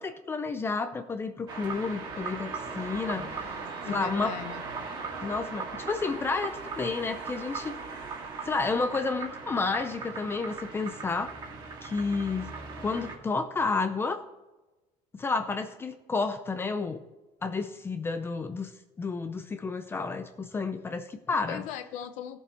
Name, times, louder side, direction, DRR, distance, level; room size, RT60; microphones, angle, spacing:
voice 1, 0.0-3.5 3.8-4.4 5.2-7.8 8.4-11.4 11.8-14.2 15.1-17.0 17.4-18.7 19.0-21.6, left 4 dB, 20° left, 8 dB, 0.5 m, -31 dB
sound 1, 1.5-13.2, right 4 dB, 35° right, 2.1 m, -38 dB
voice 2, 3.2-4.6 21.5-22.4, left 10 dB, 75° left, 9 dB, 0.7 m, -39 dB
16.0 x 6.9 x 4.4 m, 1.1 s
cardioid pair, 165°, 13 cm